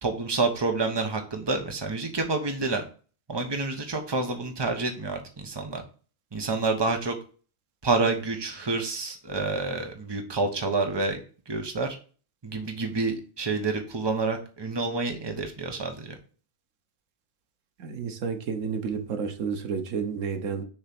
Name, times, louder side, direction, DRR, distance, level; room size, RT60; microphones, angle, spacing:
voice 1, 0.0-2.8 3.3-5.8 6.3-7.1 7.8-11.2 11.5-12.0 12.4-16.2, right 3 dB, 20° right, 4 dB, 1.0 m, -28 dB
voice 2, 17.8-20.6, right 6 dB, 90° right, 7 dB, 1.3 m, -31 dB
6.6 x 3.2 x 5.9 m, 0.38 s
omnidirectional pair, 1.3 m